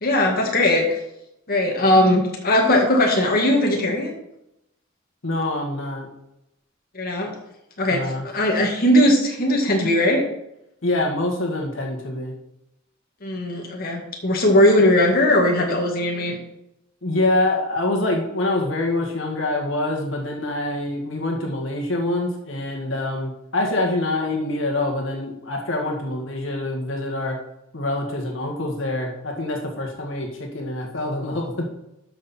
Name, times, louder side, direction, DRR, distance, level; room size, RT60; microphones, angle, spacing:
voice 1, 0.0-1.0 1.5-4.2 6.9-7.3 7.8-10.2 13.2-16.4, left 1 dB, 50° left, -1 dB, 1.9 m, -19 dB
voice 2, 5.2-6.1 7.9-8.3 10.8-12.3 17.0-27.4 27.7-31.7, left 2 dB, 70° left, 1 dB, 2.0 m, -25 dB
12.5 x 6.6 x 4.4 m, 0.86 s
head